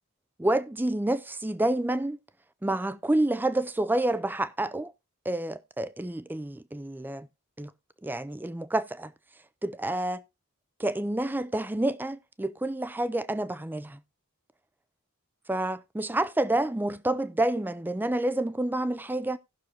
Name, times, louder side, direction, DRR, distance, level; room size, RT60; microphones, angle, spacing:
voice 1, 0.4-2.2 2.6-4.9 5.3-7.3 7.6-7.7 8.0-9.1 9.6-10.2 10.8-14.0 15.5-19.4, right 1 dB, 10° right, 0.4 m, -28 dB
17.5 x 6.3 x 2.8 m
head